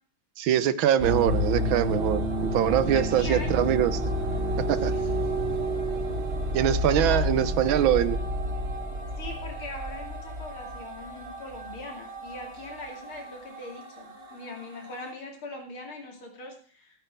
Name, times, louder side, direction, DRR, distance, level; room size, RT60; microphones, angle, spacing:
voice 1, 0.4-2.2 2.5-4.0 4.7-4.9 6.5-8.2, right 11 dB, 75° right, 15 dB, 1.5 m, -23 dB
sound 1, 1.0-15.1, equal, 30° right, 1.5 m, -30 dB
voice 2, 2.9-3.6 4.8-5.1 7.0-7.3 9.2-17.0, left 2 dB, 80° left, 2 dB, 3.5 m, -41 dB
15.0 x 8.8 x 4.6 m, 0.43 s
omnidirectional pair, 2.3 m